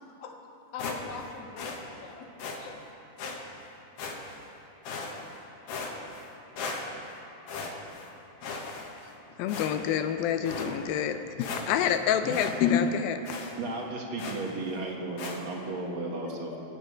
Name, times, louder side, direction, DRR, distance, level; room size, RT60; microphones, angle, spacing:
voice 1, 0.7-2.3 2.6-2.7 16.2-16.6, left 5 dB, 55° left, 2 dB, 1.8 m, -42 dB
sound 1, 0.8-1.3 1.6-1.8 2.4-2.6 3.2-3.4 4.0-4.5 4.9-5.4 5.7-6.3 6.6-7.1 7.5-8.1 8.4-9.1 9.5-10.0 10.5-10.7 11.1-11.2 11.4-12.0 12.3-12.6 12.8-12.9 13.3-13.5 14.2-14.5 15.2-15.4, left 4 dB, 70° left, 3.1 m, -37 dB
voice 2, 9.4-13.2, left 8 dB, 90° left, 8 dB, 2.5 m, -27 dB
voice 3, 12.2-12.6 13.6-16.5, right 2 dB, 50° right, 0 dB, 1.6 m, -34 dB
25.5 x 8.8 x 5.1 m, 2.9 s
omnidirectional pair, 4.1 m